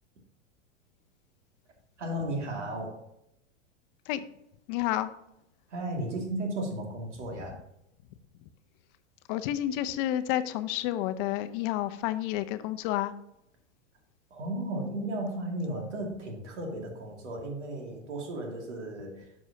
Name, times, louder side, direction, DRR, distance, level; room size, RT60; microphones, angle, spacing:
voice 1, 2.0-3.1 5.7-7.6 14.3-19.3, right 1 dB, 75° right, 1 dB, 2.4 m, -35 dB
voice 2, 4.7-5.1 9.3-13.1, left 13 dB, 45° left, 11 dB, 0.6 m, -30 dB
10.5 x 6.2 x 2.8 m, 0.83 s
hypercardioid pair, 100°, 35 cm